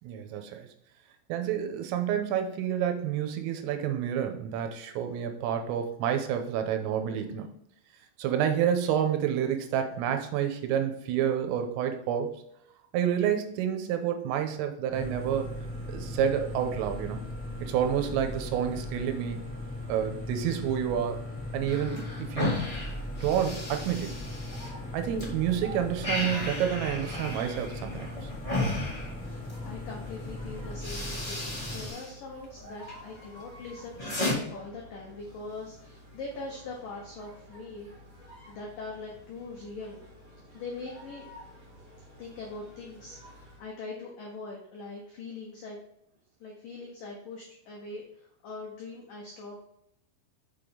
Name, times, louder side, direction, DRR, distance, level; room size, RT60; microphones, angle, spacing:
voice 1, 0.0-0.7 1.3-7.5 8.2-12.3 12.9-15.5 15.9-17.2 17.6-19.4 19.9-21.2 21.5-22.5 23.2-24.1 24.9-28.3, right 9 dB, 85° right, 6 dB, 3.4 m, -29 dB
sound 1, 14.9-31.9, left 1 dB, 5° left, 1.3 m, -38 dB
sound 2, 21.6-25.3 25.6-29.7 30.3-30.4 30.7-32.1 32.4-33.0 33.4-34.3, left 2 dB, 25° left, 0.7 m, -34 dB
sound 3, 24.0-43.7, equal, 50° right, 0.9 m, -51 dB
voice 2, 29.6-34.0 34.3-37.9 38.5-40.0 40.5-41.3 42.2-45.8 46.4-49.6, left 3 dB, 85° left, -1 dB, 1.9 m, -42 dB
6.9 x 6.6 x 3.8 m, 0.74 s
omnidirectional pair, 5.9 m